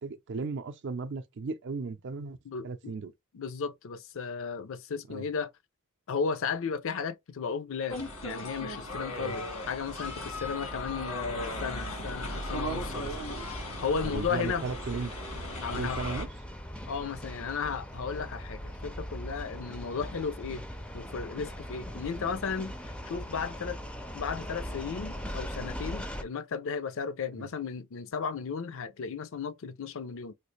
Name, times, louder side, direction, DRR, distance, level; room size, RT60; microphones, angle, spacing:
voice 1, 0.0-2.4 2.6-3.1 5.1-5.2 9.1-9.3 14.0-15.1 15.7-16.3 27.4-27.5, right 4 dB, 55° right, 0.5 m, -36 dB
voice 2, 2.4-3.0 3.3-5.5 6.1-13.2 13.5-13.6 13.8-14.7 15.6-16.0 16.9-20.6 20.9-23.8 24.1-30.3, left 5 dB, 65° left, 0.5 m, -35 dB
sound 1, 7.9-16.3, left 1 dB, 85° left, 1.4 m, -37 dB
sound 2, 9.9-26.2, equal, 5° left, 0.4 m, -41 dB
3.2 x 2.4 x 3.1 m
head